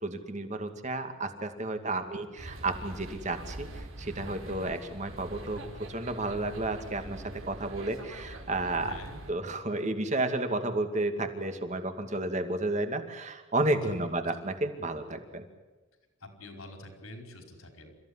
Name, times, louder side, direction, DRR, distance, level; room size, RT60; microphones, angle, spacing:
voice 1, 0.0-5.6 5.9-8.9 9.3-15.4, right 2 dB, 35° right, 7 dB, 2.3 m, -32 dB
voice 2, 1.8-2.6 8.8-9.2 13.8-14.3 16.2-18.0, left 1 dB, 80° left, 4 dB, 5.1 m, -47 dB
sound 1, 2.4-9.3, right 1 dB, 85° right, 4.3 m, -43 dB
29.0 x 15.0 x 9.9 m, 1.2 s
head